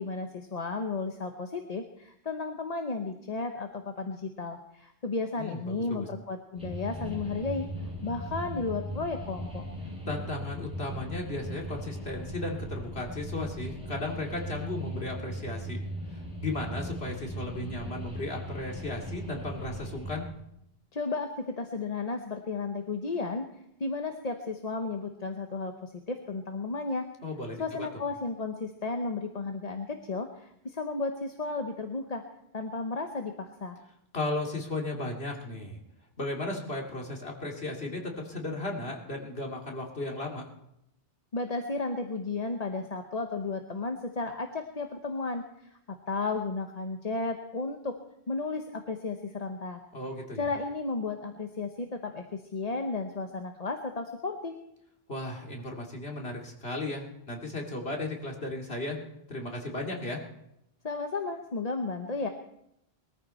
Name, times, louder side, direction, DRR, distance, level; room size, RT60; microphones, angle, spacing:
voice 1, 0.0-7.7 8.0-9.7 20.9-23.5 23.8-27.1 27.6-32.2 32.5-33.8 41.3-48.0 48.3-49.8 50.4-54.6 60.8-62.3, left 3 dB, 40° left, 5 dB, 1.0 m, -33 dB
voice 2, 5.4-6.1 10.1-15.8 16.1-20.2 27.2-27.9 34.1-35.8 36.2-40.5 49.9-50.5 55.1-59.0 59.3-60.2, left 2 dB, 80° left, 0 dB, 2.9 m, -35 dB
sound 1, 6.6-20.3, equal, 5° right, 7.6 m, -38 dB
21.5 x 14.0 x 4.4 m, 0.81 s
omnidirectional pair, 1.0 m